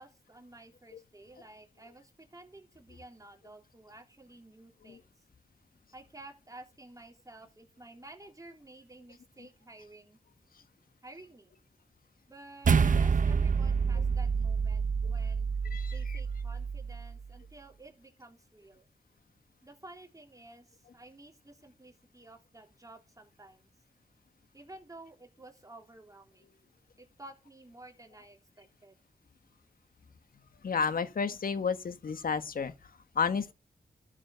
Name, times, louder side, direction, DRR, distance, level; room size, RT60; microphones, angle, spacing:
voice 1, 0.0-5.1 5.9-10.2 11.0-11.6 12.3-15.5 15.9-18.9 19.6-23.7 24.5-26.5 27.0-28.9, right 2 dB, 25° right, 3.6 m, -52 dB
sound 1, 12.6-17.2, right 6 dB, 60° right, 0.8 m, -28 dB
voice 2, 15.7-16.2 30.6-32.7 33.1-33.5, left 5 dB, 75° left, 1.5 m, -31 dB
12.0 x 7.2 x 6.8 m
cardioid pair, 55°, 15 cm